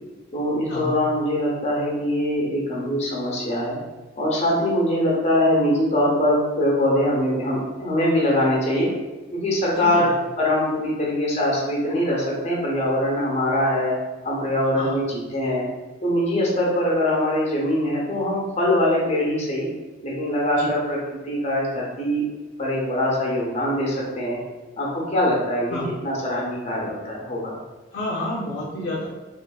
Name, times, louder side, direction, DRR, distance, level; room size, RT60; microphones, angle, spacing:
voice 1, 0.3-3.8 4.2-8.9 9.3-10.1 10.4-13.9 14.2-15.7 16.0-19.7 20.0-21.0 21.2-22.2 22.6-24.4 24.8-25.8 26.0-27.6, left 1 dB, 35° left, -3 dB, 0.8 m, -22 dB
voice 2, 9.8-10.1 14.7-15.0 20.5-20.7 25.7-25.9 27.9-29.1, left 1 dB, 65° left, -5 dB, 0.5 m, -29 dB
3.8 x 2.5 x 2.2 m, 1.2 s
head